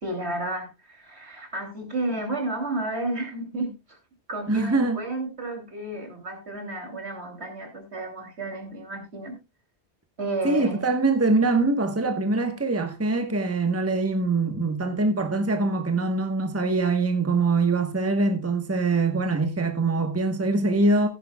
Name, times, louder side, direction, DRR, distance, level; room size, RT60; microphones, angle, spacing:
voice 1, 0.0-4.0 4.3-9.3 10.2-10.9, right 2 dB, 70° right, 3.4 m, -32 dB
voice 2, 4.5-5.0 10.4-21.1, right 3 dB, 15° right, 1.2 m, -23 dB
15.5 x 10.5 x 2.3 m
omnidirectional pair, 1.1 m